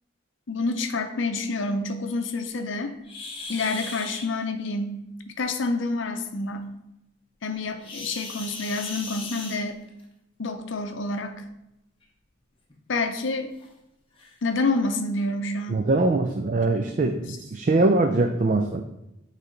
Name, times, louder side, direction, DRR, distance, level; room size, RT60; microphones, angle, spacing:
voice 1, 0.5-3.0 3.5-4.9 5.4-6.7 7.4-9.8 10.4-11.4 12.9-13.5 14.4-15.8 17.3-17.4, left 3 dB, 65° left, 7 dB, 0.6 m, -28 dB
sound 1, 3.0-4.3 7.8-10.0 11.3-11.4 12.0-12.1 12.7-12.8 13.6-13.7 14.2-14.3, left 3 dB, 25° left, 0.9 m, -37 dB
voice 2, 15.7-18.8, right 2 dB, 40° right, 5 dB, 0.3 m, -22 dB
8.2 x 3.3 x 3.8 m, 0.89 s
head